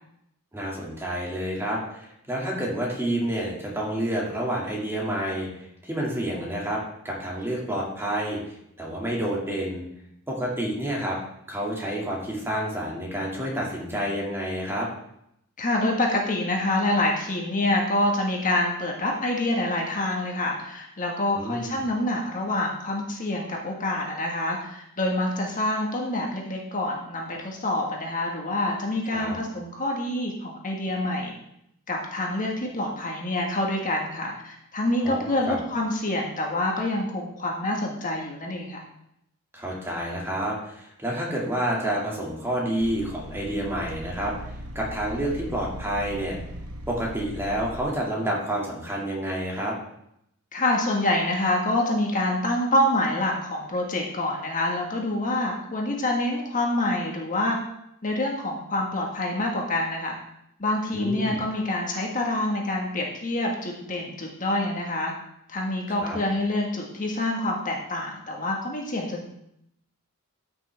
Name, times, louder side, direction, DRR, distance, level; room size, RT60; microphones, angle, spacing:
voice 1, 0.5-8.4 8.8-9.8 10.3-11.2 11.5-14.9 21.3-21.7 29.1-29.3 35.0-35.6 39.5-44.3 44.7-46.4 46.9-49.8 60.9-61.4 66.0-66.2, right 1 dB, 10° right, -3 dB, 2.2 m, -29 dB
voice 2, 15.6-31.3 31.9-38.8 50.5-57.6 58.0-60.1 60.6-65.1 65.5-69.3, left 1 dB, 40° left, 0 dB, 1.6 m, -26 dB
sound 1, 42.8-47.8, equal, 85° right, 1.0 m, -38 dB
13.5 x 6.2 x 3.5 m, 0.76 s
head